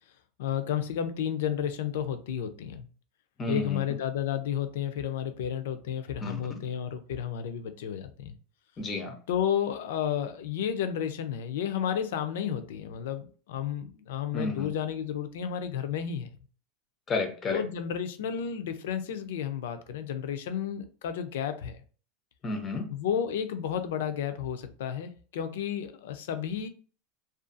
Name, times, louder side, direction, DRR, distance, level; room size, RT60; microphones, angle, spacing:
voice 1, 0.4-2.9 3.5-8.3 9.3-16.3 17.5-21.8 22.9-26.7, left 9 dB, 75° left, 0.4 m, -32 dB
voice 2, 3.4-3.8 6.2-6.4 8.8-9.1 14.3-14.7 17.1-17.6 22.4-22.9, left 3 dB, 15° left, 0.4 m, -31 dB
2.5 x 2.3 x 2.5 m
supercardioid pair, 175°, 0 cm